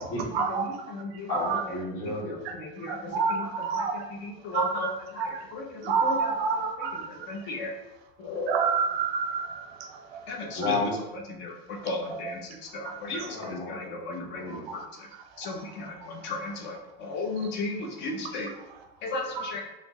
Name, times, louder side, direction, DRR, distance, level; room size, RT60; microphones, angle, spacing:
voice 1, 0.1-0.4 1.3-2.4 10.5-11.0 13.2-14.6, left 2 dB, 55° left, -5 dB, 1.5 m, -32 dB
voice 2, 0.9-1.3 2.8-3.5 4.2-4.9 5.5-5.6 6.0-6.3 7.3-7.7 8.2-8.5 10.3-10.6 11.4-11.5 11.8-12.4 12.7-13.3 13.7-13.8 14.3-14.4 15.4-15.9 16.2-16.7 17.0-18.5 19.0-19.6, left 2 dB, 40° left, 1 dB, 0.7 m, -33 dB
voice 3, 2.9-4.0 4.5-5.4 5.8-7.1 8.5-9.9 12.1-12.3 13.1-13.3 19.3-19.5, right 5 dB, 90° right, 5 dB, 0.7 m, -28 dB
4.1 x 2.1 x 3.1 m, 1.0 s
supercardioid pair, 150°, 30 cm